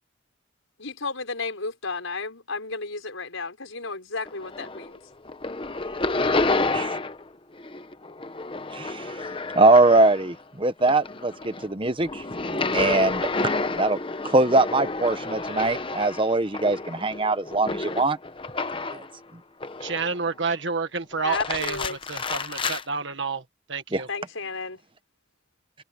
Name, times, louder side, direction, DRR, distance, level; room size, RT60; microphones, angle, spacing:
voice 1, 0.8-5.0 21.2-22.0 24.1-24.8, left 3 dB, 85° left, 5.5 m, -33 dB
sound 1, 4.3-5.0 5.3-7.3 7.6-10.4 10.8-19.1 19.6-20.3 21.1-22.8, left 3 dB, 25° left, 0.9 m, -30 dB
voice 2, 8.7-9.1 9.5-12.2 12.5-13.3 13.8-14.0 14.2-18.2 18.9-19.0 23.9-24.0, right 2 dB, 25° right, 1.1 m, -22 dB
voice 3, 19.8-23.4 23.7-24.1, right 5 dB, 65° right, 1.7 m, -29 dB
head